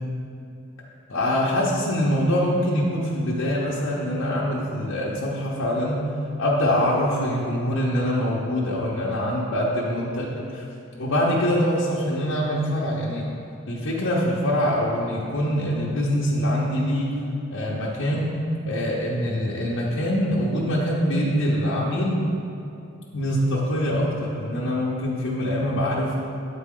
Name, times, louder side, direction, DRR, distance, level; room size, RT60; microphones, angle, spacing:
voice 1, 1.1-6.0 6.4-10.6 11.0-13.3 13.7-17.2 17.5-18.4 18.7-22.3 23.1-26.1, equal, 70° left, -6 dB, 0.8 m, -24 dB
8.3 x 4.2 x 3.7 m, 2.6 s
head